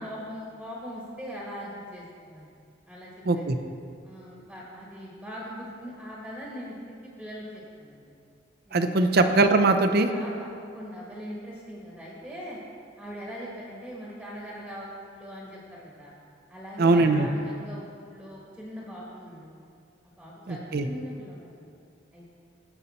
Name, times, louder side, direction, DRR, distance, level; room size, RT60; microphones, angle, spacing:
voice 1, 0.0-2.5 2.9-3.5 4.0-8.1 8.7-9.0 10.1-12.6 13.0-16.1 16.5-19.6 20.2-21.7 22.1-22.3, equal, ahead, -5 dB, 1.4 m, -41 dB
voice 2, 3.3-3.6 8.7-10.1 16.8-17.3 20.5-20.9, right 3 dB, 60° right, 8 dB, 0.6 m, -21 dB
16.0 x 5.6 x 4.2 m, 2.3 s
head